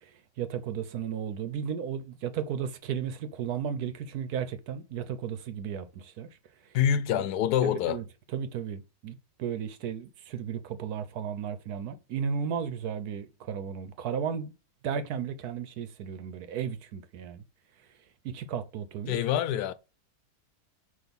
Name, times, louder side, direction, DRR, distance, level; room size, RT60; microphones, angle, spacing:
voice 1, 0.0-6.3 7.6-8.0 8.3-14.5 14.8-17.4 18.2-19.2, right 7 dB, 75° right, 1.3 m, -34 dB
voice 2, 6.7-8.0 19.1-19.7, left 9 dB, 80° left, 1.1 m, -26 dB
6.0 x 3.0 x 5.3 m
omnidirectional pair, 1.7 m